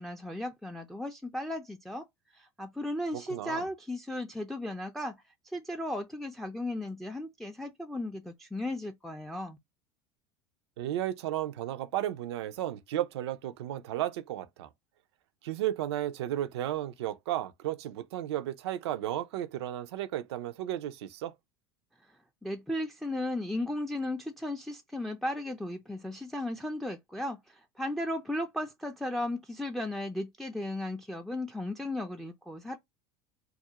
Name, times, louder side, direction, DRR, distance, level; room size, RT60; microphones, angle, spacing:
voice 1, 0.0-2.1 2.3-5.1 5.5-9.6 22.4-32.8, left 1 dB, ahead, 0.3 m, -35 dB
voice 2, 3.1-3.7 10.8-14.7 15.4-21.3, right 12 dB, 80° right, 0.4 m, -34 dB
2.4 x 2.0 x 2.8 m
hypercardioid pair, 90°, 14 cm